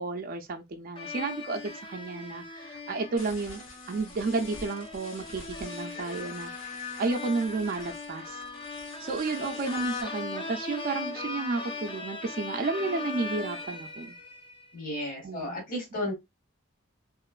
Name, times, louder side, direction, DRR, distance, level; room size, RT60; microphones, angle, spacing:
voice 1, 0.0-3.6 3.9-8.4 9.0-14.1 15.2-15.6, right 3 dB, 45° right, 0.4 m, -32 dB
sound 1, 1.0-14.6, left 4 dB, 25° left, 0.5 m, -39 dB
sound 2, 3.2-10.0, left 2 dB, 85° left, 1.0 m, -48 dB
voice 2, 14.7-16.1, left 1 dB, 45° left, 1.1 m, -33 dB
3.0 x 2.9 x 2.3 m
head